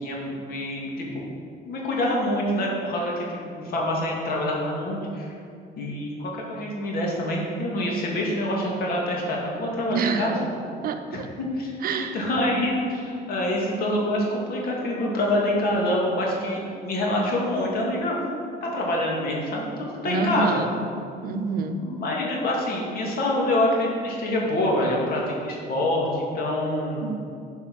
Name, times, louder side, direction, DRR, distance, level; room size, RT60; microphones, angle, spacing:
voice 1, 0.0-1.3 1.6-5.3 5.8-10.5 11.4-18.2 18.6-20.6 21.8-27.1, left 1 dB, 60° left, -2 dB, 2.5 m, -26 dB
voice 2, 9.9-10.3 10.8-11.3 11.8-12.2 20.1-20.9 21.2-21.8 27.0-27.3, right 5 dB, 60° right, 7 dB, 0.8 m, -27 dB
10.5 x 5.4 x 6.2 m, 2.4 s
cardioid pair, 110°, 17 cm